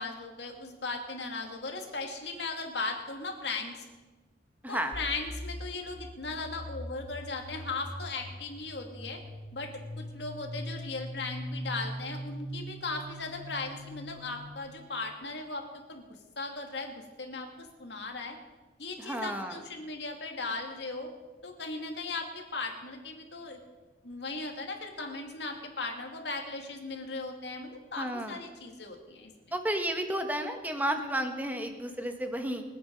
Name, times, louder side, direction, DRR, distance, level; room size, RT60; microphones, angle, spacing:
voice 1, 0.0-3.8 4.7-9.2 9.5-16.0 16.4-18.4 18.8-21.1 21.4-23.6 24.0-29.5, left 3 dB, 65° left, 3 dB, 2.5 m, -37 dB
sound 1, 4.9-14.7, equal, 90° left, 3.1 m, -42 dB
voice 2, 19.0-19.5 28.0-28.4 29.5-32.6, right 1 dB, 10° right, 5 dB, 1.5 m, -32 dB
25.0 x 9.2 x 5.4 m, 1.3 s
head